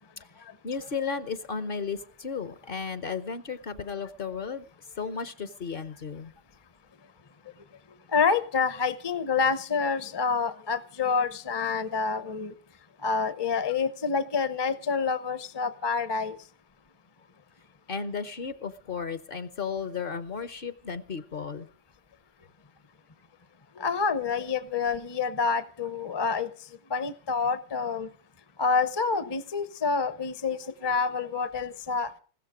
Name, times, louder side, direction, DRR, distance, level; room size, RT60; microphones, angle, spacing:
voice 1, 0.6-4.7 5.0-6.3 17.9-21.7, left 5 dB, 50° left, 13 dB, 1.0 m, -34 dB
voice 2, 8.1-12.5 13.0-16.3 23.8-26.5 26.9-28.1 28.6-32.1, left 5 dB, 25° left, 14 dB, 0.7 m, -27 dB
16.0 x 13.0 x 4.9 m, 0.40 s
omnidirectional pair, 1.2 m